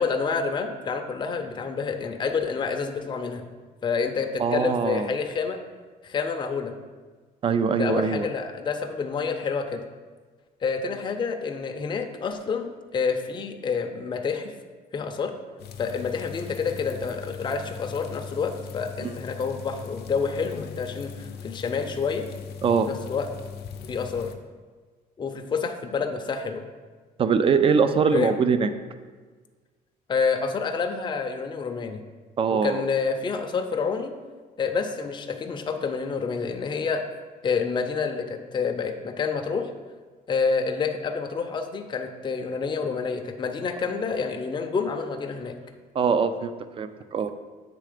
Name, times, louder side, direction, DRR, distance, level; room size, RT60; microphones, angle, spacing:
voice 1, 0.0-3.4 3.8-5.6 6.0-6.7 7.7-9.8 10.6-14.5 14.9-15.3 15.8-22.3 22.9-23.3 23.9-24.3 25.2-26.6 28.1-28.4 30.1-32.0 32.5-34.1 34.6-37.0 37.4-39.7 40.3-45.6, left 5 dB, 25° left, 4 dB, 0.5 m, -28 dB
voice 2, 4.4-5.1 7.4-8.3 19.0-19.1 22.6-22.9 27.2-28.7 32.4-32.8 45.9-46.5 46.8-47.3, right 6 dB, 30° right, 11 dB, 0.4 m, -22 dB
sound 1, 15.6-24.3, left 6 dB, 70° left, 0.7 m, -39 dB
7.6 x 3.3 x 5.0 m, 1.4 s
cardioid pair, 110°, 17 cm